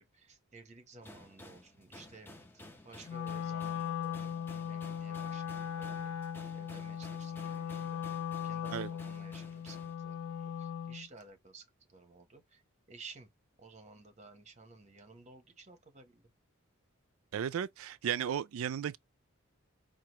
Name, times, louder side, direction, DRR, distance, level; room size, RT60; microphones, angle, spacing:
voice 1, 0.0-2.3 2.8-6.1 6.5-11.6 11.9-12.6 12.9-13.3 13.6-16.2, right 3 dB, 30° right, 0.9 m, -54 dB
sound 1, 1.0-9.9, left 1 dB, 10° left, 0.6 m, -54 dB
Wind instrument woodwind instrument, 3.0-11.1, left 8 dB, 85° left, 0.4 m, -38 dB
voice 2, 17.3-19.0, right 8 dB, 75° right, 0.3 m, -34 dB
4.6 x 2.4 x 2.9 m
head